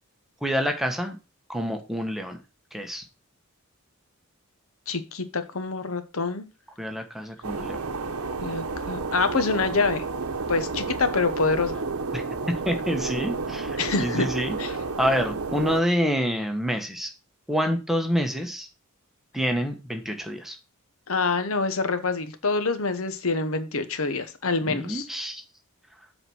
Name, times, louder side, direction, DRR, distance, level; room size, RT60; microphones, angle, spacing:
voice 1, 0.4-1.2 1.5-2.4 2.7-3.0 6.8-7.8 12.1-12.2 12.6-14.6 15.0-17.1 17.5-18.7 19.3-20.6 24.7-25.4, equal, ahead, 4 dB, 1.2 m, -27 dB
voice 2, 4.9-6.5 8.4-10.0 10.5-11.8 13.8-14.2 14.6-14.7 21.1-25.0, left 4 dB, 70° left, 11 dB, 1.0 m, -26 dB
sound 1, 7.4-15.8, right 4 dB, 90° right, 0.9 m, -31 dB
7.9 x 4.3 x 6.2 m, 0.30 s
head